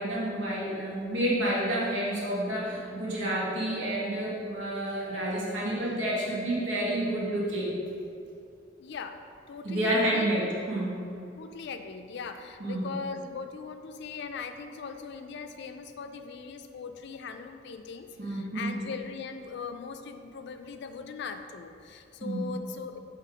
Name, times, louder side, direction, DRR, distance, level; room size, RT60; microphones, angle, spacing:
voice 1, 0.0-7.7 9.6-11.0 12.6-12.8 18.2-18.8 22.2-22.5, right 1 dB, 90° right, -6 dB, 1.4 m, -29 dB
voice 2, 8.8-9.2 9.5-10.3 11.4-23.0, left 5 dB, 65° left, 7 dB, 0.4 m, -40 dB
6.7 x 3.2 x 4.8 m, 2.6 s
head